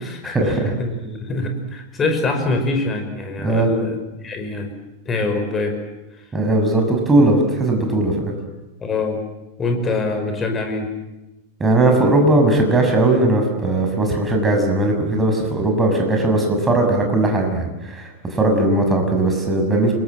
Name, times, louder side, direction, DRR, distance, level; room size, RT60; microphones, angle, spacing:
voice 1, 0.0-4.7 5.1-5.8 6.2-6.3 8.8-9.2 9.6-10.9, left 3 dB, 20° left, 5 dB, 5.2 m, -24 dB
voice 2, 3.4-3.8 6.3-8.2 11.6-19.9, right 2 dB, 15° right, 3 dB, 6.9 m, -18 dB
29.0 x 22.5 x 7.6 m, 1.0 s
figure-of-eight pair, 90°, 0 cm